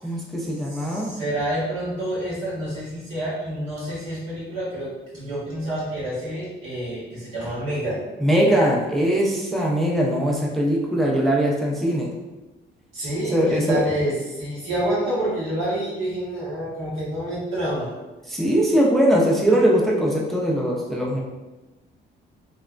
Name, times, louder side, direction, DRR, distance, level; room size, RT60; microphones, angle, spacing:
voice 1, 0.0-1.2 8.2-12.1 13.3-13.9 18.3-21.2, equal, ahead, -2 dB, 0.4 m, -21 dB
voice 2, 0.7-8.1 12.9-17.9, right 1 dB, 85° right, -8 dB, 1.4 m, -28 dB
3.1 x 2.0 x 2.4 m, 1.1 s
cardioid pair, 90°, 20 cm